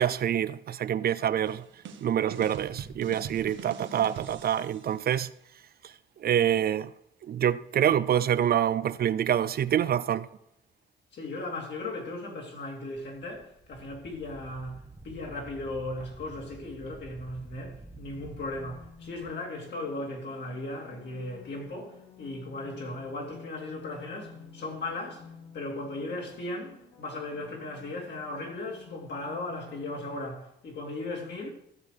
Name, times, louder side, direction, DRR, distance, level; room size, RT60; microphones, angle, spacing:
voice 1, 0.0-1.6 2.0-5.3 6.2-6.9 7.3-10.3, right 10 dB, 50° right, 0.4 m, -26 dB
sound 1, 1.4-4.9, right 7 dB, 75° right, 1.0 m, -42 dB
voice 2, 11.1-25.3 25.5-31.5, left 2 dB, 60° left, 3.0 m, -37 dB
Wind, 13.0-19.3, right 3 dB, 15° right, 0.9 m, -49 dB
sound 2, 18.1-30.2, left 5 dB, 75° left, 2.3 m, -51 dB
14.5 x 6.3 x 5.1 m
cardioid pair, 90°, 20 cm